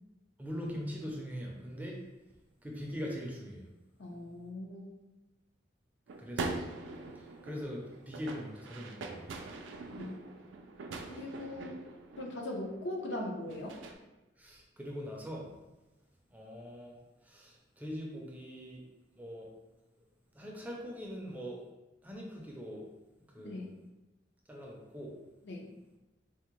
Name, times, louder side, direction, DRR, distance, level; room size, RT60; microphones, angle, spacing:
voice 1, 0.4-2.0 2.6-3.6 6.2-6.6 7.2-9.3 14.4-15.5 16.3-17.0 17.2-18.8 19.2-19.5 20.3-21.6 22.0-22.9 23.3-23.6 24.5-25.2, equal, 10° right, -2 dB, 0.4 m, -42 dB
voice 2, 4.0-4.9 9.9-10.2 11.2-11.8 12.2-13.8 23.4-23.7 25.4-25.7, left 1 dB, 70° left, 0 dB, 0.6 m, -40 dB
sound 1, 6.1-13.9, right 3 dB, 80° right, 0.4 m, -43 dB
3.4 x 2.1 x 3.0 m, 1.0 s
head